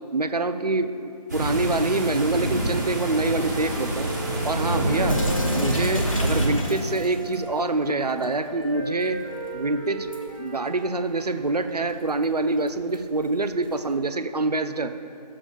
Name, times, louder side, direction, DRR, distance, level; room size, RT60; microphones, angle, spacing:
voice 1, 0.1-4.1 4.4-5.2 5.5-10.1 10.4-15.0, right 3 dB, 70° right, 10 dB, 0.5 m, -26 dB
sound 1, 1.3-6.5, right 1 dB, 25° right, 1.3 m, -26 dB
Wind instrument woodwind instrument, 2.8-11.3, right 2 dB, 5° left, 1.1 m, -37 dB
Sink (filling or washing) / Drip, 5.1-14.0, left 1 dB, 50° left, 1.1 m, -41 dB
13.5 x 7.3 x 2.5 m, 2.6 s
figure-of-eight pair, 160°, 21 cm